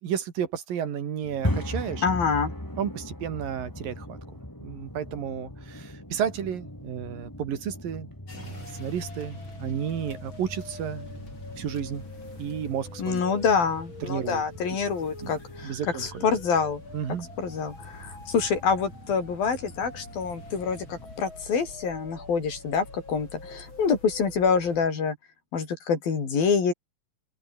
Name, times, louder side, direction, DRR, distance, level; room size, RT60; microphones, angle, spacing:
voice 1, 0.0-2.0 2.8-4.2 4.6-11.1 11.6-12.1 12.4-13.2 14.0-14.4 15.2-16.3 16.9-17.3, right 8 dB, 70° right, 4.1 m, -32 dB
sound 1, 1.2-21.1, left 1 dB, 5° left, 4.4 m, -39 dB
voice 2, 2.0-2.5 13.0-16.8 17.4-25.2 25.5-26.7, left 5 dB, 80° left, 6.6 m, -26 dB
sound 2, 8.3-24.9, left 2 dB, 30° left, 7.7 m, -45 dB
open air
omnidirectional pair, 4.1 m